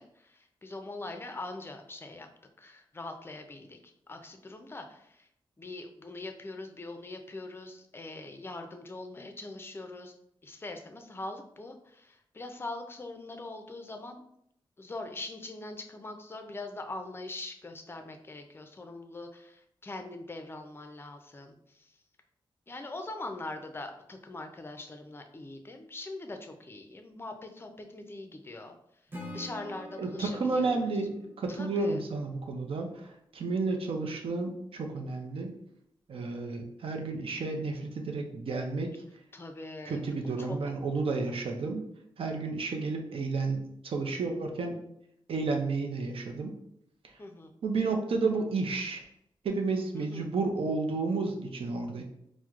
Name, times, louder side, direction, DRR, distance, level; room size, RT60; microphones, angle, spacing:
voice 1, 0.0-2.3 2.6-5.3 5.6-10.1 10.4-14.3 14.8-21.9 22.7-28.7 29.3-30.9 31.5-32.0 39.3-40.6 47.2-47.5 50.0-50.3, left 2 dB, 25° left, 6 dB, 0.4 m, -42 dB
Acoustic guitar / Strum, 29.1-32.3, left 1 dB, 20° right, 0.8 m, -46 dB
voice 2, 30.0-35.5 36.1-38.9 39.9-41.8 42.2-44.8 45.3-46.5 47.0-47.1 47.6-49.1 49.4-52.0, right 3 dB, 75° right, 3 dB, 0.5 m, -31 dB
4.4 x 2.1 x 2.4 m, 0.74 s
wide cardioid pair, 85°, 9 cm